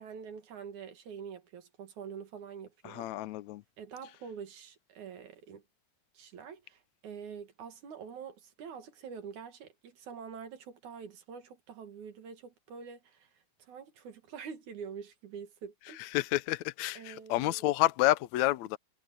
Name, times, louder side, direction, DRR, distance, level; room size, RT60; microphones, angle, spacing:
voice 1, 0.0-3.1 3.8-5.6 6.1-13.3 13.6-16.0 16.9-17.7, right 6 dB, 65° right, 3.1 m, -46 dB
voice 2, 2.8-3.6 16.0-18.8, left 17 dB, 75° left, 1.7 m, -29 dB
omnidirectional pair, 3.9 m